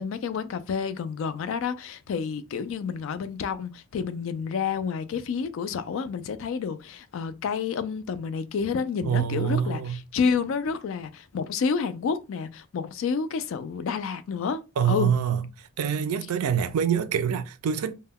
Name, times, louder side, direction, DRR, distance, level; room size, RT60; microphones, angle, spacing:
voice 1, 0.0-15.1, left 6 dB, 65° left, 0.3 m, -29 dB
voice 2, 9.0-10.0 14.8-15.4 15.8-17.9, right 8 dB, 85° right, 0.4 m, -25 dB
2.1 x 2.1 x 3.4 m
head